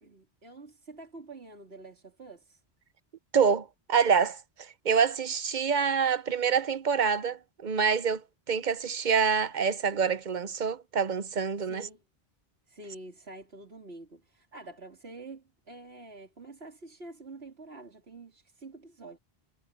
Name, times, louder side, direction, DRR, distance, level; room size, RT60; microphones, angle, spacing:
voice 1, 0.0-2.6 11.6-12.0 12.7-19.2, right 2 dB, 75° right, 3.7 m, -47 dB
voice 2, 3.3-4.4 4.8-8.2 8.5-11.9, right 6 dB, 50° right, 0.8 m, -26 dB
omnidirectional pair, 1.1 m